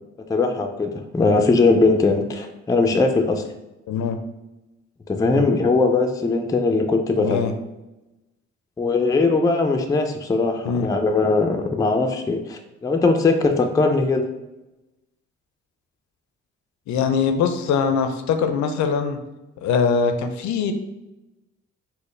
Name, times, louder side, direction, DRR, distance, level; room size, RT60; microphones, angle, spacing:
voice 1, 0.3-3.4 5.1-7.5 8.8-14.3, left 3 dB, 10° left, 4 dB, 0.4 m, -20 dB
voice 2, 3.9-4.2 5.3-5.5 7.2-7.5 10.6-10.9 16.9-19.2 19.6-20.7, left 6 dB, 75° left, 8 dB, 0.5 m, -22 dB
4.2 x 2.1 x 3.2 m, 0.99 s
cardioid pair, 70°, 29 cm